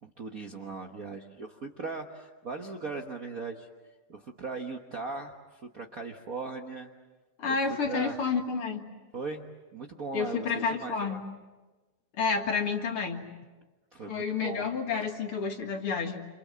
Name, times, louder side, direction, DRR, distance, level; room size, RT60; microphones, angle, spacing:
voice 1, 0.0-3.7 4.1-6.9 7.5-7.6 7.8-8.2 9.1-9.4 9.7-11.2 13.9-14.7, right 4 dB, 90° right, 3 dB, 0.7 m, -38 dB
voice 2, 7.4-8.9 10.1-11.2 12.1-13.3 14.1-16.3, left 5 dB, 50° left, 4 dB, 2.4 m, -30 dB
28.0 x 27.5 x 7.5 m, 1.2 s
omnidirectional pair, 3.7 m